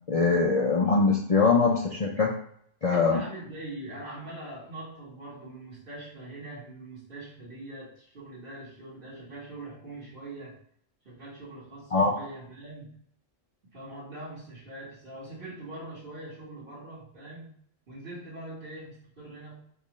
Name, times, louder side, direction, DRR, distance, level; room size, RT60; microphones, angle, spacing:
voice 1, 0.1-2.4 2.8-3.2 11.9-12.1, left 4 dB, 70° left, -1 dB, 0.3 m, -22 dB
voice 2, 2.9-10.6 11.0-12.9 13.7-17.5 17.9-19.7, right 2 dB, 50° right, -8 dB, 1.7 m, -42 dB
4.6 x 2.4 x 3.0 m, 0.65 s
omnidirectional pair, 1.2 m